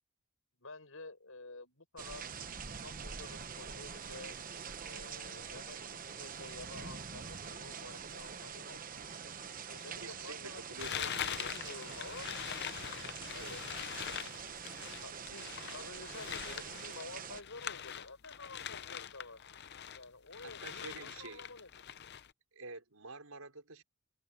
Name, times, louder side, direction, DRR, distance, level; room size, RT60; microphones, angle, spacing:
voice 1, 0.6-2.3 2.8-4.3 4.8-8.8 9.7-12.3 12.8-13.6 15.0-19.4 19.9-21.9, left 3 dB, 70° left, 6.5 m, -51 dB
sound 1, 2.0-17.4, right 6 dB, 40° right, 1.0 m, -45 dB
voice 2, 10.0-11.1 13.3-13.6 20.4-21.5 22.5-23.8, right 3 dB, 80° right, 4.8 m, -48 dB
sound 2, 10.8-20.0 20.3-22.3, left 9 dB, 50° left, 0.7 m, -43 dB
head